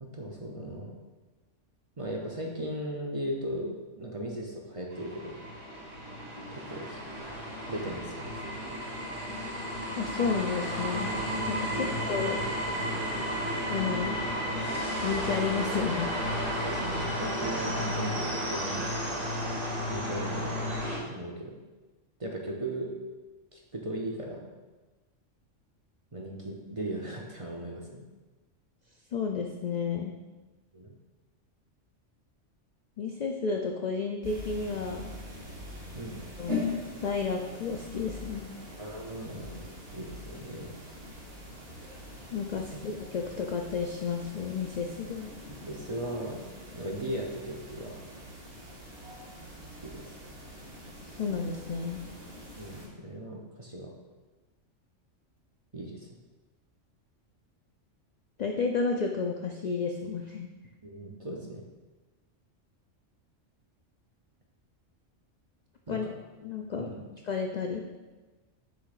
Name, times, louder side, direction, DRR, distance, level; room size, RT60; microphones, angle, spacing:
voice 1, 0.0-1.0 2.0-5.4 6.5-7.0 7.7-8.5 11.7-11.9 16.6-18.9 19.9-21.6 22.2-22.9 23.5-24.5 26.1-28.0 30.7-30.9 35.9-36.2 38.8-40.7 42.7-42.8 45.5-48.1 49.8-50.1 52.6-53.9 55.7-56.1 60.8-61.6 65.9-66.2 66.8-67.0, right 1 dB, 35° right, 0 dB, 0.6 m, -38 dB
sound 1, 4.9-21.0, equal, 90° right, 1.9 m, -33 dB
voice 2, 10.0-11.2 11.5-12.4 13.7-14.2 15.0-16.1 29.1-30.2 33.0-35.1 36.4-36.7 37.0-38.6 42.3-45.3 51.0-52.0 58.4-60.5 65.9-66.0 66.4-66.9 67.3-67.8, left 5 dB, 65° left, 2 dB, 0.4 m, -32 dB
sound 2, 34.2-52.9, left 2 dB, 65° right, 2.0 m, -42 dB
7.6 x 6.5 x 2.5 m, 1.2 s
omnidirectional pair, 1.3 m